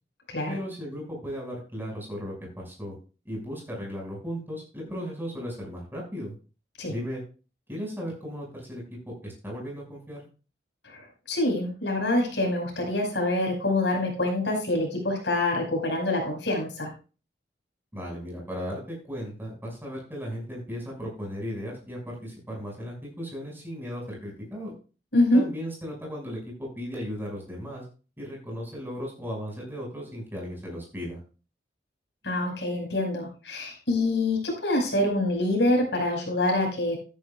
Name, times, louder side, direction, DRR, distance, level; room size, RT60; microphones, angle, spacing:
voice 1, 0.5-2.9 3.2-6.3 6.9-7.2 7.7-10.3 17.9-24.7 25.3-27.8 28.2-31.2, equal, 15° right, -2 dB, 6.0 m, -36 dB
voice 2, 10.8-16.9 25.1-25.5 32.2-37.0, left 1 dB, 85° left, 1 dB, 5.5 m, -26 dB
13.5 x 11.0 x 2.4 m, 0.34 s
head